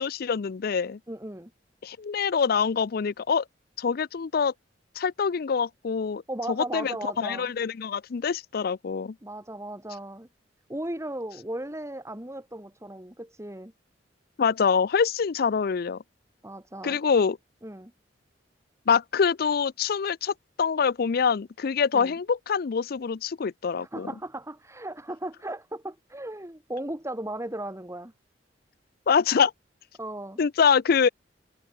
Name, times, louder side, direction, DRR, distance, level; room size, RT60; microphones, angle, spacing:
voice 1, 0.0-1.0 1.8-3.4 3.8-4.5 5.0-6.2 6.6-9.1 14.4-16.0 16.8-17.4 18.9-24.1 29.1-29.5 30.4-31.1, left 6 dB, 55° left, 0.4 m, -25 dB
voice 2, 1.1-1.5 6.3-7.5 9.2-10.3 10.7-13.7 16.4-17.0 17.6-17.9 21.9-22.2 23.7-28.1 30.0-30.4, right 1 dB, 15° right, 2.6 m, -36 dB
head